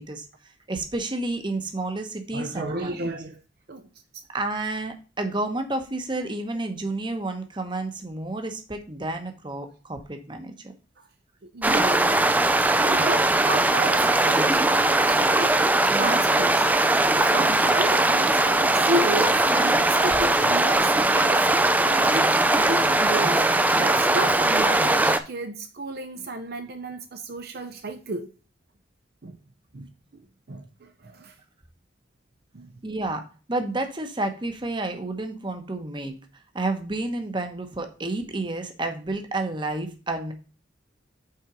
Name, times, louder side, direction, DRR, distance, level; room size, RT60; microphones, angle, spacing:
voice 1, 0.0-3.1 4.3-10.7 15.9-16.2 32.8-36.1 36.5-40.3, right 2 dB, 25° right, 0.9 m, -30 dB
voice 2, 2.3-3.4 3.7-4.2 11.5-12.2 12.8-15.6 15.9-16.6 17.2-21.5 21.9-23.4 23.8-28.3 29.2-29.4 29.7-29.9 30.1-30.2 30.5-31.3 32.5-32.7, right 2 dB, 55° right, 0.6 m, -32 dB
sound 1, 11.6-25.2, right 2 dB, 10° right, 0.4 m, -20 dB
5.6 x 4.4 x 5.0 m
head